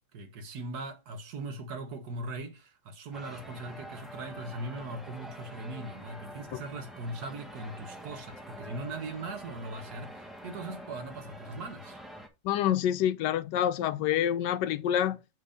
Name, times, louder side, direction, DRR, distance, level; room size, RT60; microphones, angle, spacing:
voice 1, 0.1-12.0, right 2 dB, 65° right, 1.5 m, -40 dB
sound 1, 3.1-12.3, equal, ahead, 0.8 m, -46 dB
voice 2, 12.4-15.2, left 10 dB, 80° left, 1.2 m, -27 dB
7.4 x 3.4 x 5.0 m
omnidirectional pair, 1.9 m